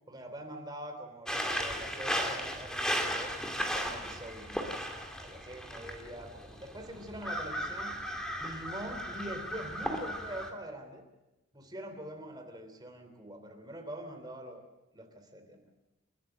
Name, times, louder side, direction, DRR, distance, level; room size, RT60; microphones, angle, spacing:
voice 1, 0.1-3.3 3.7-4.7 5.1-7.9 8.4-11.0 11.5-14.7 14.9-15.6, right 1 dB, 20° right, 5 dB, 3.2 m, -44 dB
sound 1, 1.3-10.5, equal, 5° left, 2.3 m, -36 dB
30.0 x 13.0 x 7.6 m, 1.0 s
head